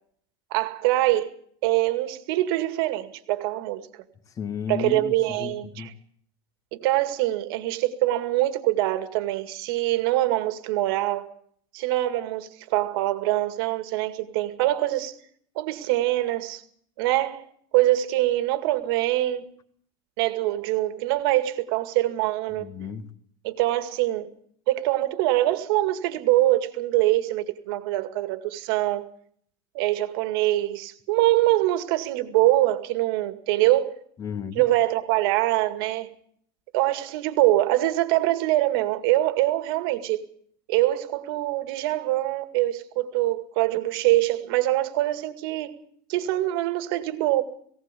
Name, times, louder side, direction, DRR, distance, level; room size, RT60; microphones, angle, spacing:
voice 1, 0.5-1.3 1.6-3.9 4.7-5.9 6.7-11.3 11.7-15.1 15.6-16.6 17.0-17.4 17.7-19.4 20.2-22.7 23.4-24.3 24.7-29.1 29.7-34.0 34.5-36.1 36.7-40.2 40.7-45.7 46.1-47.4, right 16 dB, 70° right, 2.1 m, -24 dB
voice 2, 4.4-5.9 22.6-23.1 34.2-34.7, left 6 dB, 25° left, 1.9 m, -34 dB
19.0 x 17.5 x 8.4 m
supercardioid pair, 145°, 13 cm